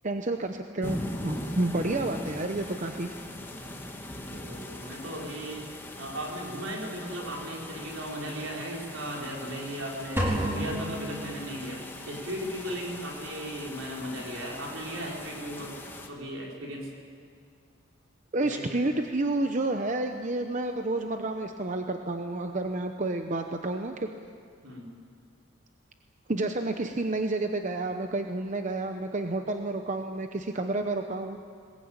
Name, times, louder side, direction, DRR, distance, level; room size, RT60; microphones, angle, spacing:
voice 1, 0.0-3.1 18.3-24.1 26.3-31.4, right 2 dB, 35° right, 5 dB, 0.8 m, -30 dB
sound 1, 0.8-16.1, left 1 dB, 10° left, 1.6 m, -41 dB
voice 2, 4.3-5.7 6.0-15.8 16.0-16.9 18.4-18.8 24.6-24.9, equal, 75° right, -2 dB, 4.9 m, -37 dB
sound 2, 10.2-12.0, right 1 dB, 10° right, 4.6 m, -31 dB
21.0 x 20.0 x 8.9 m, 2.2 s
head